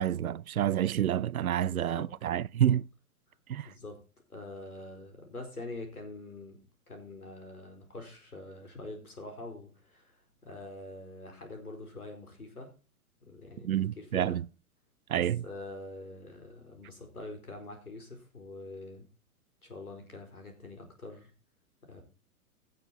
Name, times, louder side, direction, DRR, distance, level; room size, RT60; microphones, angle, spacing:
voice 1, 0.0-2.9 3.5-3.7 13.6-14.4 15.1-15.4, right 11 dB, 70° right, 0.6 m, -28 dB
voice 2, 1.5-2.1 3.6-4.0 4.3-6.6 6.9-12.7 13.2-14.4 15.1-19.1 19.6-21.3 21.8-22.0, left 2 dB, 80° left, 4.4 m, -45 dB
16.5 x 6.6 x 4.3 m
figure-of-eight pair, 105°, 44 cm